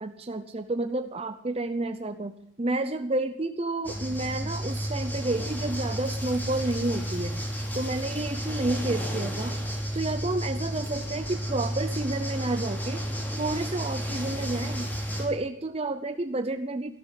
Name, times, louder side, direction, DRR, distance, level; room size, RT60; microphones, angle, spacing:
voice 1, 0.0-7.4 7.7-9.6 9.9-13.0 13.4-14.9 15.2-16.9, right 2 dB, 30° right, 8 dB, 0.7 m, -30 dB
sound 1, 3.8-15.3, equal, 10° left, 3.1 m, -32 dB
13.0 x 12.5 x 8.2 m, 0.68 s
head